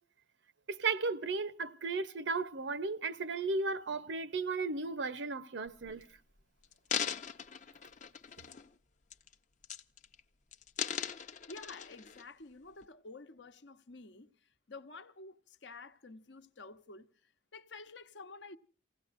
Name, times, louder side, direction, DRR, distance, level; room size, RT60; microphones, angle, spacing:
voice 1, 0.7-6.0, right 4 dB, 70° right, 0.8 m, -35 dB
sound 1, 5.7-6.0 6.6-8.7 9.1-9.3 9.6-10.2 10.5-12.2 12.8-12.9, left 8 dB, 40° left, 0.7 m, -39 dB
voice 2, 11.5-14.3 14.7-17.1 17.5-18.6, left 3 dB, 70° left, 0.9 m, -50 dB
29.0 x 17.0 x 2.5 m
head